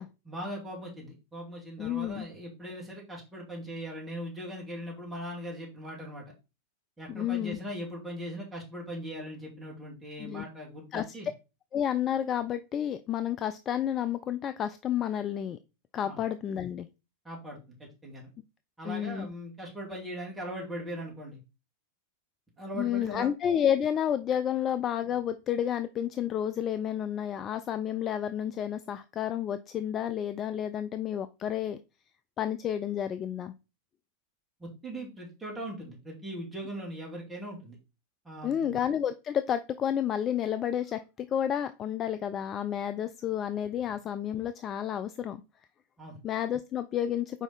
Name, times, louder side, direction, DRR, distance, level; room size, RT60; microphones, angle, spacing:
voice 1, 0.3-6.2 7.0-11.3 16.0-16.2 17.2-18.3 18.8-21.4 22.6-23.3 34.6-37.8 38.2-38.8 46.0-46.2, equal, 10° right, -4 dB, 2.4 m, -40 dB
voice 2, 1.8-2.3 7.1-7.6 10.2-10.4 10.9-11.1 11.7-15.6 15.9-16.9 18.8-19.3 22.7-31.8 32.4-33.5 38.4-45.4 46.2-47.4, left 9 dB, 30° left, 11 dB, 0.4 m, -30 dB
5.1 x 4.8 x 4.1 m, 0.28 s
figure-of-eight pair, 90°, 0 cm